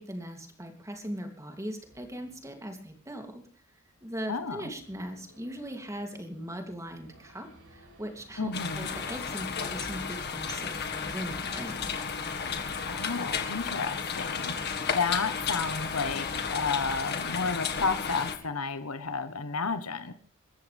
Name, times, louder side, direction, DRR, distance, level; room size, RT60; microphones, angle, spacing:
voice 1, 0.0-3.4 4.0-11.9, equal, 15° right, 4 dB, 2.9 m, -39 dB
Race car auto racing / Idling / Accelerating revving vroom, 1.8-18.4, right 1 dB, 70° right, 7.8 m, -56 dB
voice 2, 4.3-4.7 8.4-8.9 12.9-20.1, left 4 dB, 80° left, 11 dB, 1.2 m, -32 dB
sound 1, 8.5-18.4, left 6 dB, 50° left, 1.8 m, -33 dB
27.5 x 14.0 x 3.5 m, 0.41 s
head